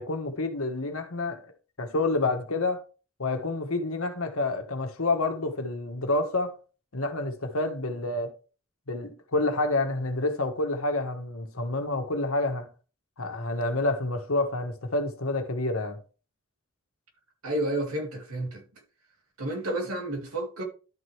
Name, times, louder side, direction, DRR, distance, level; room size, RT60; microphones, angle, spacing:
voice 1, 0.0-1.4 1.8-2.8 3.2-6.5 6.9-8.3 8.9-12.7 13.2-16.0, left 2 dB, 75° left, 1.5 m, -28 dB
voice 2, 17.4-18.6 19.4-20.6, right 1 dB, 85° right, 2.7 m, -30 dB
12.0 x 4.7 x 3.3 m
head